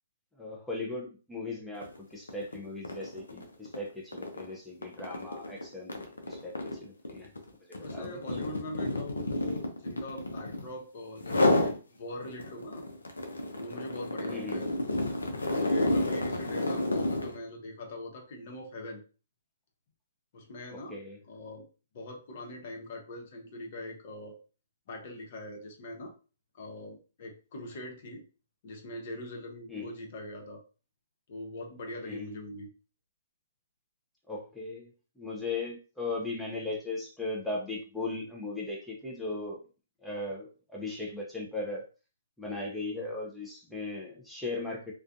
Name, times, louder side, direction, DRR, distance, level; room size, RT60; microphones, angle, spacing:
voice 1, 0.3-7.3 7.6-8.2 14.3-14.7 20.7-21.2 29.7-30.0 32.0-32.4 34.3-39.6 40.0-41.8 42.4-44.9, left 3 dB, ahead, -3 dB, 0.5 m, -38 dB
sound 1, 1.8-2.0 2.3-10.7 11.2-11.8 12.2-17.4, left 1 dB, 85° left, 0.6 m, -30 dB
voice 2, 7.8-12.8 13.5-14.7 15.4-19.0 20.3-21.0 21.3-21.7 21.9-24.4 24.9-26.1 26.5-28.2 28.6-30.6 31.3-32.7, left 1 dB, 50° left, 1 dB, 0.9 m, -42 dB
2.4 x 2.3 x 2.5 m, 0.35 s
hypercardioid pair, 130°, 0 cm